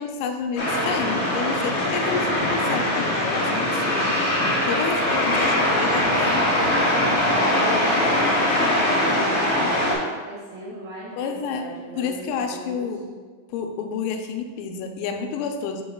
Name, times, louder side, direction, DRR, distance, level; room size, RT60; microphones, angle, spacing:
voice 1, 0.0-4.2 4.7-6.4 11.2-11.7 12.0-13.1 13.5-15.8, left 6 dB, 85° left, 4 dB, 3.2 m, -29 dB
sound 1, 0.6-9.9, left 1 dB, 70° left, 1.5 m, -22 dB
voice 2, 4.8-6.2 6.5-6.7 7.2-12.8, right 2 dB, 85° right, -5 dB, 2.1 m, -36 dB
7.3 x 3.1 x 5.1 m, 1.5 s
omnidirectional pair, 5.9 m